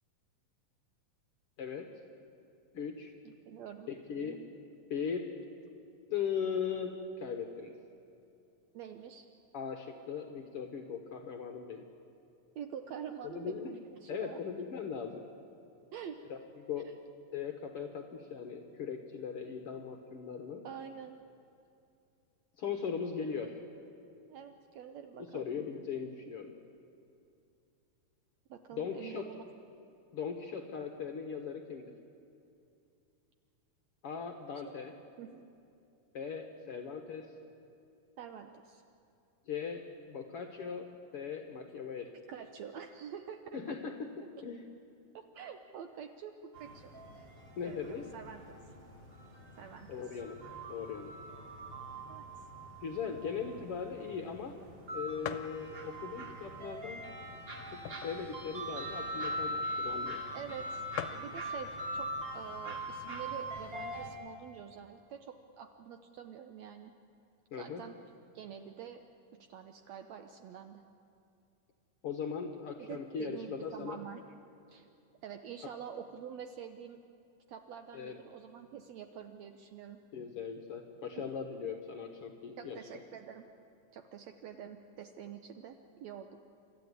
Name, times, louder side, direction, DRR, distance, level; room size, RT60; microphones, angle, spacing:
voice 1, 1.6-1.9 2.7-3.1 3.9-4.4 4.9-5.3 6.1-6.9 7.2-7.7 9.5-11.8 13.2-13.7 14.1-15.2 16.3-16.9 17.3-20.6 22.6-23.6 25.2-26.5 28.7-29.3 30.1-31.9 34.0-34.9 36.1-37.3 39.5-42.1 43.5-44.6 47.6-48.1 49.9-50.4 50.7-51.1 52.8-54.6 54.9-57.0 57.7-60.2 67.5-67.8 72.0-74.0 75.6-75.7 77.9-78.2 80.1-83.0, left 6 dB, 60° left, 5 dB, 1.6 m, -39 dB
voice 2, 3.2-4.0 8.7-9.3 12.5-14.4 15.9-16.2 20.6-21.2 24.3-25.4 28.5-29.4 35.2-35.4 38.2-38.8 42.3-43.4 43.7-43.8 45.1-47.3 47.6-48.6 49.6-49.9 52.1-52.5 60.3-60.8 61.1-66.9 67.6-68.0 68.3-69.0 69.3-70.8 72.8-74.2 74.7-74.9 75.2-77.0 77.5-80.0 81.2-81.3 82.6-83.5 83.9-86.4, right 8 dB, 75° right, 7 dB, 1.7 m, -46 dB
sound 1, 46.5-64.1, equal, 35° right, 3.6 m, -42 dB
sound 2, 54.3-54.4 54.7-54.8 55.2-55.6 56.2-56.3 57.1-58.3 58.7-58.8 58.9-59.2 60.0-60.1 60.3-60.4 60.6-60.7 60.9-61.3 62.2-62.6 63.1-63.2 63.4-64.2, left 11 dB, 80° left, 2.3 m, -42 dB
29.5 x 13.5 x 9.7 m, 2.6 s
omnidirectional pair, 3.9 m